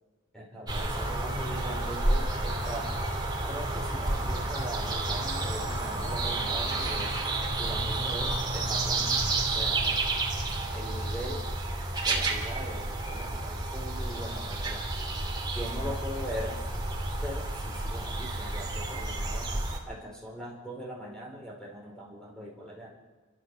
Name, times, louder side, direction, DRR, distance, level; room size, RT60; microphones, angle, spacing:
voice 1, 0.3-2.9 3.5-7.2 7.6-9.1 9.5-10.1 10.7-11.5 12.0-14.9 15.5-16.6 17.2-19.5 19.8-22.9, equal, 5° left, -3 dB, 4.9 m, -41 dB
sound 1, 0.7-19.8, right 2 dB, 20° right, 2.8 m, -30 dB
28.5 x 13.5 x 6.9 m, 1.3 s
head